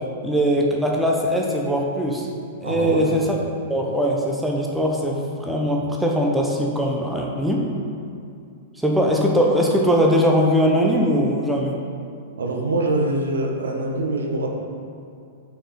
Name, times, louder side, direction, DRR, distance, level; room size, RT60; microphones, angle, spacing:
voice 1, 0.2-2.3 2.6-3.4 3.7-7.6 8.8-11.7, equal, 5° right, -2 dB, 0.9 m, -21 dB
voice 2, 2.6-3.2 12.4-14.5, right 2 dB, 70° right, 1 dB, 0.9 m, -24 dB
5.4 x 5.3 x 5.2 m, 2.5 s
figure-of-eight pair, 100°, 0 cm